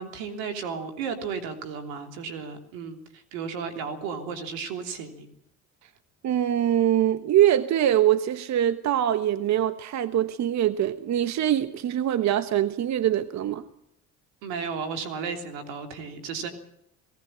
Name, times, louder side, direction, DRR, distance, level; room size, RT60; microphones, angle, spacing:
voice 1, 0.0-5.3 14.4-16.5, right 5 dB, 85° right, 3.2 m, -34 dB
voice 2, 6.2-13.6, right 11 dB, 55° right, 1.1 m, -23 dB
18.5 x 17.0 x 8.9 m
supercardioid pair, 80°, 34 cm